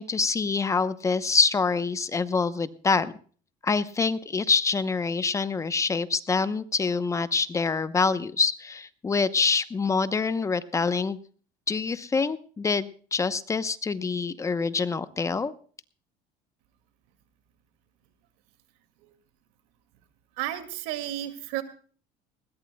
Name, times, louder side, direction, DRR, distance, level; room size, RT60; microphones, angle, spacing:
voice 1, 0.0-3.1 3.6-11.2 11.7-15.5, left 4 dB, 20° left, 13 dB, 0.8 m, -26 dB
voice 2, 20.4-21.6, right 13 dB, 85° right, 9 dB, 2.3 m, -32 dB
20.5 x 18.0 x 2.3 m, 0.42 s
cardioid pair, 135°, 16 cm